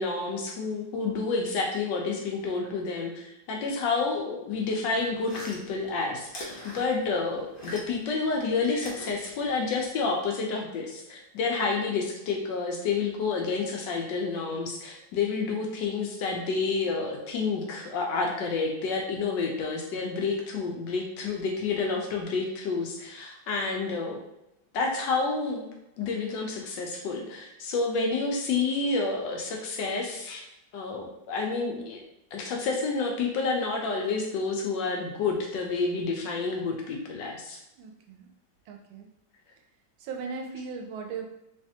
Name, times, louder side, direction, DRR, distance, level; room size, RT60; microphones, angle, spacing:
voice 1, 0.0-24.2 24.7-25.7 26.0-30.4 30.7-32.0 32.3-37.6, left 4 dB, 75° left, 0 dB, 1.2 m, -29 dB
sound 1, 4.9-8.1 8.4-9.9, equal, 90° left, 0.4 m, -43 dB
voice 2, 37.8-38.3 38.7-39.1 40.0-41.3, right 5 dB, 80° right, 3 dB, 1.4 m, -38 dB
3.4 x 3.2 x 2.8 m, 0.85 s
omnidirectional pair, 2.2 m